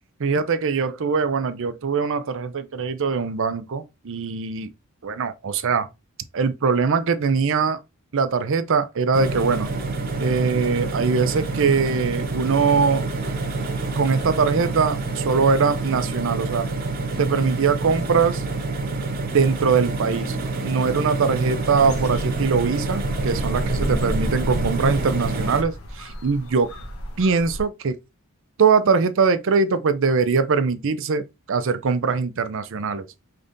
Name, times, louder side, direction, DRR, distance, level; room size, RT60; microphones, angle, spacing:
voice 1, 0.2-4.7 5.0-5.9 6.3-7.8 8.1-9.7 10.2-13.1 14.0-16.7 17.2-18.4 19.3-26.7 27.2-28.0 28.6-31.2 31.5-33.1, right 5 dB, 60° right, 0.5 m, -22 dB
sound 1, 9.1-25.6, right 3 dB, 45° right, 1.0 m, -27 dB
sound 2, 21.7-27.6, equal, 75° left, 1.1 m, -31 dB
5.1 x 3.3 x 2.6 m
head